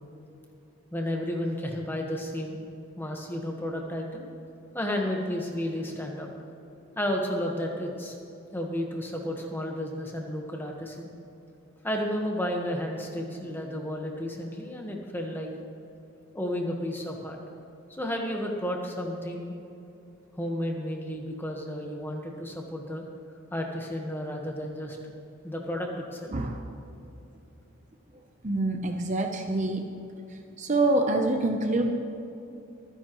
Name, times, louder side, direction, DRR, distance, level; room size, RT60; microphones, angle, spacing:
voice 1, 0.9-2.6 3.0-4.3 4.7-6.3 7.0-8.2 8.5-11.1 11.8-15.5 16.3-17.4 17.9-19.5 20.4-23.0 23.5-25.0 25.4-26.3, equal, 10° left, 1 dB, 1.3 m, -32 dB
voice 2, 28.4-29.9 30.6-31.9, right 2 dB, 35° right, 4 dB, 0.7 m, -26 dB
24.0 x 10.0 x 3.1 m, 2.8 s
head